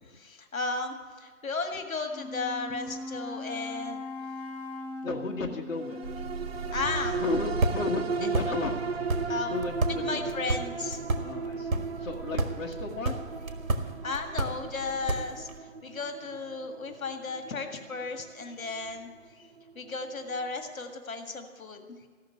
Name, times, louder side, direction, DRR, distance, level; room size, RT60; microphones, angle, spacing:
voice 1, 0.1-4.0 6.7-7.2 9.3-9.6 9.9-11.0 14.0-15.5 15.8-19.1 19.4-19.5 19.8-22.1, left 3 dB, 85° left, 5 dB, 1.9 m, -34 dB
Wind instrument woodwind instrument, 2.0-6.9, left 2 dB, 55° left, 4.8 m, -40 dB
voice 2, 5.0-6.0 7.1-8.8 9.5-10.2 11.2-13.2, left 3 dB, 70° left, -1 dB, 1.6 m, -33 dB
sound 1, 5.8-20.5 20.9-21.0, right 4 dB, 50° right, 0.8 m, -37 dB
sound 2, 6.0-15.6, right 2 dB, 80° right, 1.6 m, -33 dB
15.0 x 6.6 x 9.6 m, 1.5 s
hypercardioid pair, 170°, 40 cm